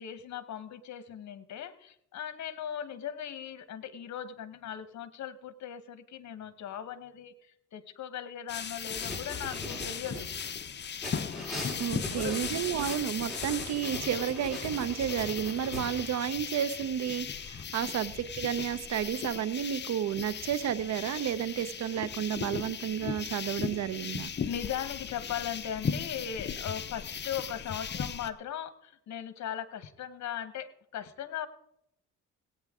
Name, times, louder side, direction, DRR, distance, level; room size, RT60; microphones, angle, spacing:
voice 1, 0.0-10.3 11.9-12.4 17.8-17.9 24.5-31.5, left 9 dB, 65° left, 14 dB, 1.0 m, -39 dB
sound 1, 8.5-28.3, left 7 dB, 35° left, 0.7 m, -37 dB
sound 2, 8.9-10.5 11.0-16.0, left 1 dB, ahead, 5.9 m, -41 dB
voice 2, 11.8-24.3, right 9 dB, 60° right, 15 dB, 0.7 m, -32 dB
18.0 x 8.7 x 3.6 m, 0.76 s
cardioid pair, 90°, 30 cm